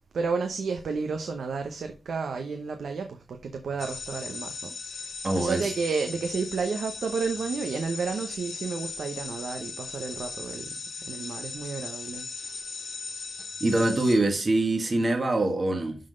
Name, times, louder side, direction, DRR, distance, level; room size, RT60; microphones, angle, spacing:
voice 1, 0.1-10.7 11.1-13.5, right 5 dB, 75° right, 0.8 m, -32 dB
sound 1, 3.8-14.2, left 4 dB, 70° left, 1.3 m, -38 dB
voice 2, 5.2-5.7 13.6-16.0, right 2 dB, 35° right, 1.3 m, -24 dB
11.5 x 4.0 x 3.8 m
wide cardioid pair, 95°, 0 cm